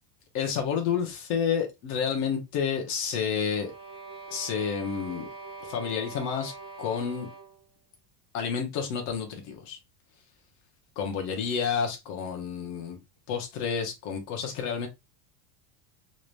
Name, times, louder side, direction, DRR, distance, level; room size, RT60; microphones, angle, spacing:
voice 1, 0.3-3.7 4.3-5.3 5.6-6.5 6.8-7.3 8.3-9.8 11.0-13.0 13.3-14.9, left 7 dB, 35° left, 1.1 m, -30 dB
sound 1, 3.5-7.7, right 3 dB, 10° left, 0.6 m, -43 dB
3.9 x 3.3 x 2.5 m
supercardioid pair, 180°, 50 cm